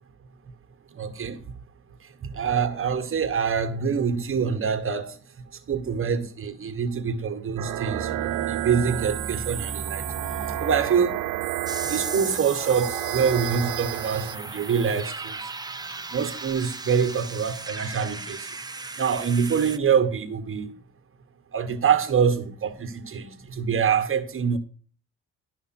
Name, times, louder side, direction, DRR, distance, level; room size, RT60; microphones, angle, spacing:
voice 1, 1.0-1.5 2.2-5.2 5.7-10.0 10.6-11.2 11.8-15.4 16.1-18.5 19.0-20.7 21.5-24.6, right 6 dB, 45° right, 1.5 m, -25 dB
sound 1, 7.6-14.3, right 15 dB, 80° right, 0.6 m, -31 dB
sound 2, 7.9-13.8, right 2 dB, 20° left, 4.5 m, -39 dB
sound 3, 11.7-19.8, right 3 dB, 15° right, 0.9 m, -36 dB
12.0 x 5.5 x 6.0 m
cardioid pair, 90°, 30 cm